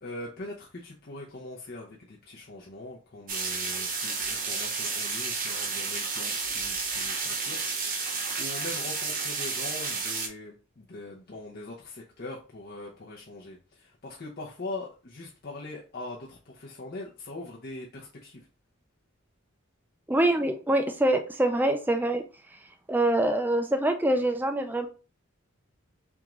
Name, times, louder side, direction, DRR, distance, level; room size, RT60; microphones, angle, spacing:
voice 1, 0.0-18.5, left 2 dB, 45° left, -3 dB, 0.8 m, -42 dB
sound 1, 3.3-10.3, right 4 dB, 40° right, 0.9 m, -31 dB
voice 2, 20.1-22.2 22.9-24.9, right 1 dB, 10° right, 7 dB, 0.4 m, -25 dB
3.6 x 3.6 x 3.0 m, 0.35 s
head